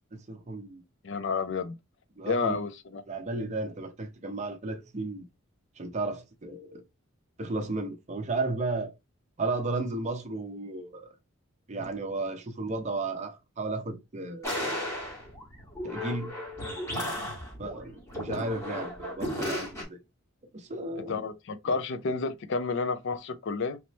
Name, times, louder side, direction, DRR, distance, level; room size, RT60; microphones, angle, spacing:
voice 1, 0.1-0.8 2.2-2.6 3.1-5.2 5.8-6.8 7.4-8.9 9.4-11.1 11.7-14.8 15.8-16.3 17.6-20.0 20.5-21.2, right 2 dB, 35° right, 0.6 m, -34 dB
voice 2, 1.0-1.8 2.3-3.0 21.0-23.8, left 4 dB, 60° left, 0.4 m, -30 dB
sound 1, 14.4-19.8, left 1 dB, 15° left, 1.4 m, -35 dB
3.2 x 3.0 x 3.0 m
head